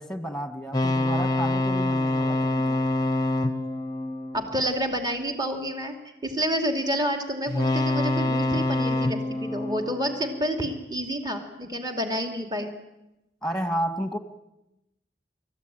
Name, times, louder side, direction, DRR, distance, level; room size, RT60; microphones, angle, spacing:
voice 1, 0.0-2.8 13.4-14.2, right 1 dB, 5° left, 8 dB, 1.7 m, -31 dB
sound 1, 0.7-5.1 7.5-10.8, left 2 dB, 20° left, 0.9 m, -26 dB
voice 2, 4.3-6.0 6.2-12.7, equal, 25° right, 5 dB, 2.6 m, -29 dB
29.0 x 14.5 x 9.1 m, 0.91 s
head